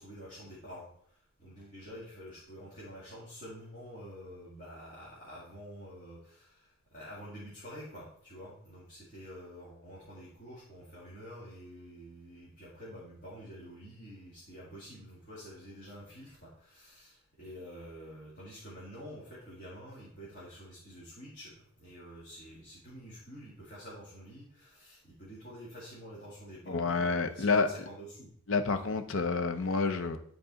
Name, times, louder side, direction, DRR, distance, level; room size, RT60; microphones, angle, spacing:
voice 1, 0.0-21.5 21.8-28.3 28.8-29.0, equal, 35° left, -7 dB, 2.1 m, -48 dB
voice 2, 26.7-27.7 28.5-30.2, left 4 dB, 60° left, 8 dB, 0.7 m, -29 dB
10.5 x 4.0 x 4.0 m, 0.64 s
head